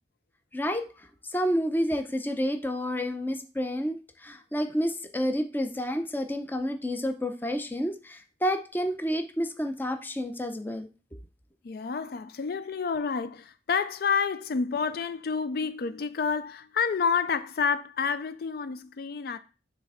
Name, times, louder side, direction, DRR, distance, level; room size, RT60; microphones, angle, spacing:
voice 1, 0.5-0.9 1.3-10.9, equal, 10° left, 0.6 m, -29 dB
voice 2, 11.6-19.4, left 5 dB, 55° left, 0.4 m, -29 dB
6.6 x 3.3 x 5.5 m
head